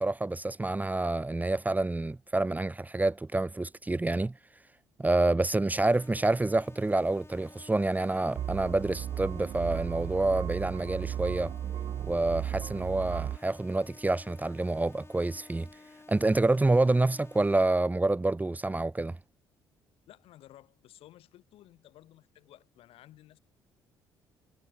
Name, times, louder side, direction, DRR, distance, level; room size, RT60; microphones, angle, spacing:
voice 1, 0.0-4.3 5.0-11.5 12.0-15.7 16.1-19.2, right 2 dB, 15° right, 1.2 m, -27 dB
sound 1, 5.8-17.6, left 3 dB, 25° left, 6.2 m, -54 dB
sound 2, 8.4-13.4, right 10 dB, 55° right, 0.6 m, -35 dB
voice 2, 20.1-23.4, left 14 dB, 70° left, 7.2 m, -55 dB
hypercardioid pair, 55°, 10 cm